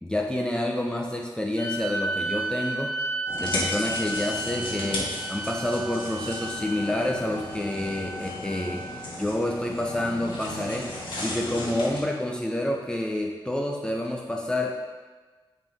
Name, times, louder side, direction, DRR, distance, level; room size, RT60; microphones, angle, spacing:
voice 1, 0.0-3.0 3.4-8.8 9.2-10.9 11.2-14.7, left 1 dB, 10° left, 0 dB, 0.5 m, -28 dB
sound 1, 1.6-9.1, right 2 dB, 40° left, 1.3 m, -33 dB
sound 2, 3.3-12.0, left 1 dB, 70° left, 1.6 m, -35 dB
9.0 x 3.8 x 3.2 m, 1.4 s
wide cardioid pair, 125°, 9 cm